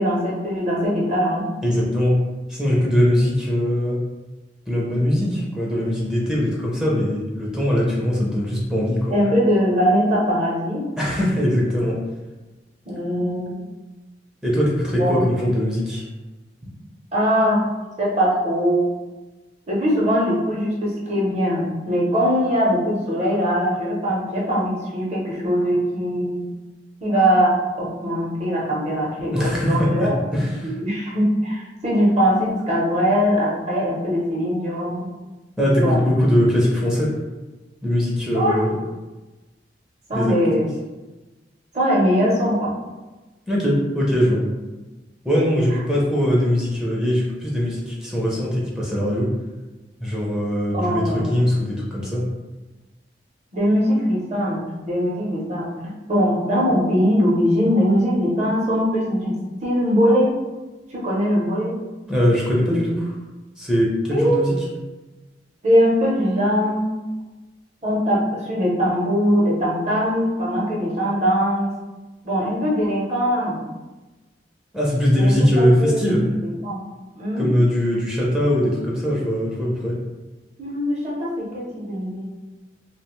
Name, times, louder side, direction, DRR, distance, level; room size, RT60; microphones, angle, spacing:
voice 1, 0.0-1.5 9.1-10.8 12.8-13.5 15.0-15.2 17.1-17.7 18.0-18.9 19.7-26.5 27.0-30.1 30.4-35.1 35.8-36.0 38.3-38.6 40.1-40.7 41.7-42.7 50.7-51.4 53.5-55.7 56.1-59.3 59.6-60.3 60.9-61.7 64.1-64.5 65.6-66.9 67.8-71.7 72.2-73.6 75.2-76.8 77.2-77.5 80.6-82.2, equal, 40° right, -4 dB, 0.7 m, -21 dB
voice 2, 1.6-2.2 2.5-4.0 4.7-9.1 11.0-12.0 14.4-16.0 29.3-30.7 35.6-37.1 37.8-38.8 40.1-40.4 43.5-44.4 45.2-49.3 50.0-52.3 62.1-63.2 63.6-64.5 74.7-76.2 77.4-79.9, equal, 5° right, -5 dB, 0.4 m, -21 dB
2.4 x 2.1 x 2.9 m, 1.2 s
head